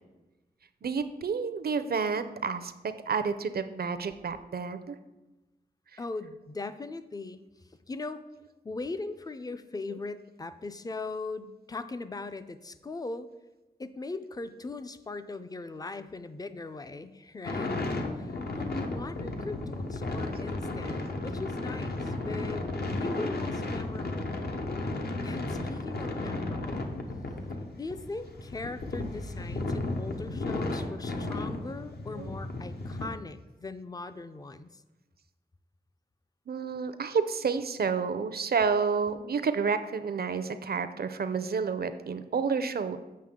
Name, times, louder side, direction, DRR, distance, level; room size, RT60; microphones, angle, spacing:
voice 1, 0.8-5.0 5.9-6.0 9.9-10.0 32.1-32.3 36.5-43.0, right 5 dB, 65° right, 11 dB, 0.5 m, -30 dB
voice 2, 6.0-8.2 8.6-13.3 13.8-17.8 18.1-24.5 25.2-26.9 27.8-34.8, left 3 dB, 20° left, 11 dB, 0.4 m, -40 dB
sound 1, 17.4-33.0, left 2 dB, 70° left, 0.8 m, -34 dB
7.5 x 6.2 x 3.6 m, 1.1 s
wide cardioid pair, 105°, 17 cm